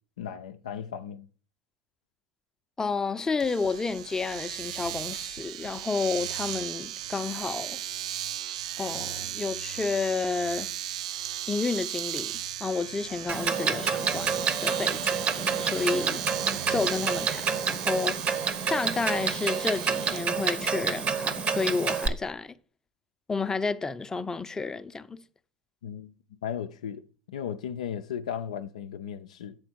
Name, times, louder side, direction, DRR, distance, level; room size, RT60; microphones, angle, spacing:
voice 1, 0.2-1.3 25.8-26.1 26.4-27.0 27.3-29.5, left 8 dB, 75° left, 0.4 m, -35 dB
voice 2, 2.8-7.8 8.8-10.7 11.5-16.2 16.7-22.5 23.3-25.2, left 4 dB, 15° left, 0.6 m, -31 dB
Domestic sounds home sounds, 3.4-20.2, right 12 dB, 75° right, 0.3 m, -37 dB
Clock, 13.3-22.1, right 5 dB, 35° right, 1.0 m, -28 dB
7.9 x 4.2 x 6.0 m
hypercardioid pair, 80°, 4 cm